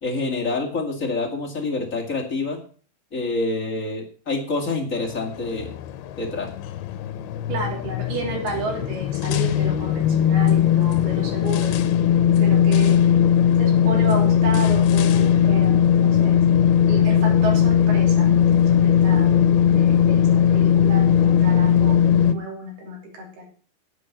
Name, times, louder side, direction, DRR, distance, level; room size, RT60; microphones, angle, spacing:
voice 1, 0.0-2.6 3.1-5.7 6.2-6.5, left 3 dB, 30° left, 0 dB, 1.7 m, -27 dB
sound 1, 5.0-22.3, left 9 dB, 90° left, 2.8 m, -18 dB
voice 2, 7.5-12.1 12.4-13.0 13.6-16.4 16.9-19.3 19.7-23.4, right 2 dB, 80° right, 0 dB, 5.1 m, -32 dB
9.5 x 9.2 x 7.2 m, 0.42 s
omnidirectional pair, 4.4 m